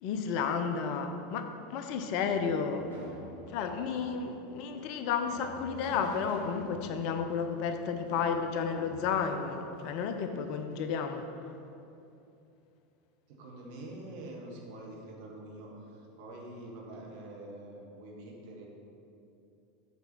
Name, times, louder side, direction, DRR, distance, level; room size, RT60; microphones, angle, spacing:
voice 1, 0.0-2.9 3.5-11.3, left 6 dB, 50° left, 7 dB, 0.6 m, -32 dB
sound 1, 2.1-10.2, right 1 dB, 85° right, 1.6 m, -48 dB
voice 2, 13.3-18.6, right 1 dB, 60° right, -1 dB, 1.5 m, -45 dB
6.9 x 4.6 x 6.0 m, 2.7 s
figure-of-eight pair, 80°, 0 cm